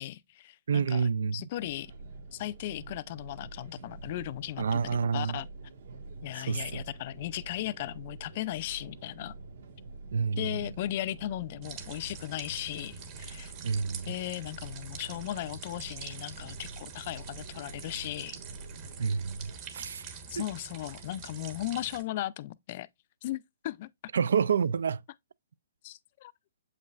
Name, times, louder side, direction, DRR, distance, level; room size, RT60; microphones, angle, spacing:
voice 1, 0.0-1.9 2.3-4.8 5.1-5.5 6.2-9.3 10.4-13.5 14.1-18.4 20.3-22.9 23.2-23.9 25.8-26.3, left 14 dB, 35° left, 0.4 m, -37 dB
voice 2, 0.7-1.5 4.6-5.4 6.4-6.8 10.1-10.5 13.6-14.1 19.0-20.4 24.1-25.0, right 6 dB, 75° right, 0.3 m, -29 dB
sound 1, 1.6-19.6, right 3 dB, 60° right, 1.8 m, -47 dB
sound 2, 11.6-22.0, right 6 dB, 25° right, 1.1 m, -45 dB
7.6 x 5.3 x 2.4 m
hypercardioid pair, 160°, 0 cm